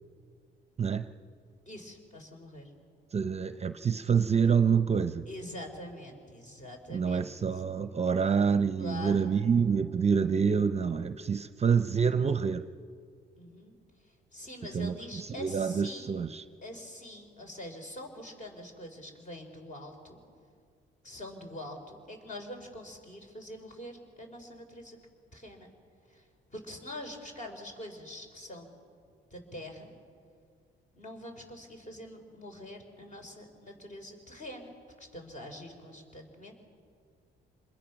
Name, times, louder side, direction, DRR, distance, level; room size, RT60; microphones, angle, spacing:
voice 1, 0.8-1.1 3.1-5.3 6.9-12.7 14.7-16.4, right 6 dB, 30° right, 0.7 m, -27 dB
voice 2, 1.6-2.7 5.3-7.3 8.1-8.2 8.8-9.2 13.4-16.2 16.6-20.2 21.0-25.0 25.3-25.7 26.1-26.2 26.5-28.7 29.3-30.0 30.9-36.6, left 1 dB, 40° left, 4.5 m, -44 dB
26.5 x 21.5 x 6.1 m
cardioid pair, 90°, 20 cm